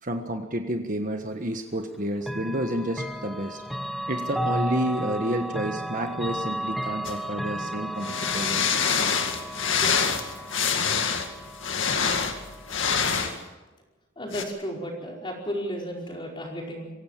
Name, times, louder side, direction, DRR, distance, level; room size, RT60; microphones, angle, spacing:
voice 1, 0.0-3.6 4.1-8.8, right 1 dB, 40° right, 5 dB, 1.4 m, -30 dB
Chime / Clock, 2.2-13.0, right 1 dB, ahead, 0.8 m, -34 dB
sound 1, 7.0-7.2 8.0-13.4 14.3-14.4, left 6 dB, 75° left, 2.2 m, -26 dB
voice 2, 14.2-16.9, equal, 25° left, -1 dB, 5.1 m, -33 dB
25.0 x 16.0 x 7.5 m, 1.1 s
head